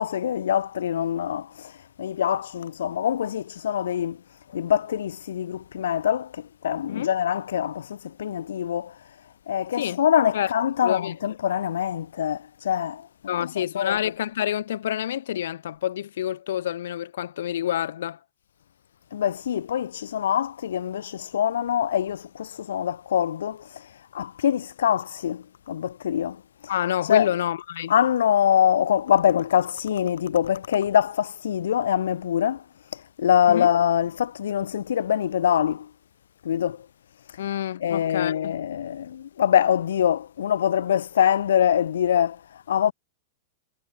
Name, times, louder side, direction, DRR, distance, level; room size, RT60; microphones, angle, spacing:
voice 1, 0.0-1.7 2.0-4.2 4.5-9.0 9.5-14.1 19.1-23.9 24.1-26.4 27.0-27.3 27.9-32.6 32.9-35.9 36.4-36.9 37.8-42.9, left 9 dB, 90° left, 5.2 m, -24 dB
voice 2, 10.8-11.1 13.3-18.2 26.7-27.9 33.5-33.7 37.4-38.5, left 11 dB, 70° left, 3.1 m, -28 dB
supercardioid pair, 165°, 0 cm